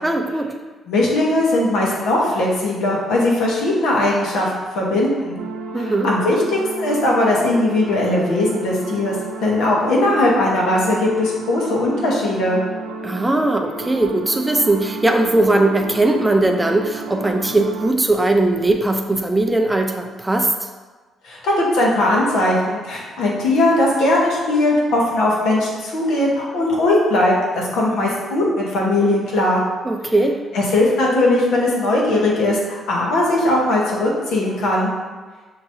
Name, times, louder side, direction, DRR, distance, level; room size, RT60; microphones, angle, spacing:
voice 1, 0.0-0.5 5.7-6.1 13.0-20.5 29.8-30.4, right 2 dB, 15° right, 4 dB, 0.5 m, -19 dB
voice 2, 0.9-5.4 5.8-9.1 9.4-12.6 21.2-29.6 30.5-32.6 32.9-34.9, left 1 dB, 85° left, -3 dB, 1.1 m, -19 dB
sound 1, 5.4-17.9, right 3 dB, 85° right, 0.3 m, -32 dB
5.9 x 3.0 x 2.7 m, 1.3 s
cardioid pair, 90°, 0 cm